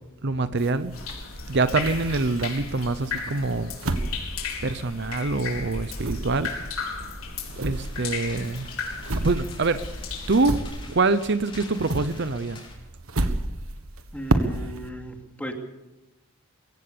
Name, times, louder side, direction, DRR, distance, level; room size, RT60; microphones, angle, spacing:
voice 1, 0.2-1.0 1.5-3.7 4.6-6.5 7.5-8.7 9.1-9.8 10.3-10.6 10.9-12.6, right 3 dB, 55° right, 12 dB, 0.8 m, -25 dB
sound 1, 0.6-2.7 3.2-5.3 5.5-11.2 11.5-14.9, right 2 dB, 75° right, 1.5 m, -31 dB
sound 2, 0.9-10.6, left 4 dB, 75° left, 4.6 m, -35 dB
sound 3, 7.7-12.7, left 3 dB, 25° left, 5.5 m, -47 dB
voice 2, 14.1-15.5, equal, 5° left, 2 dB, 2.7 m, -36 dB
22.5 x 16.5 x 6.9 m, 0.98 s
head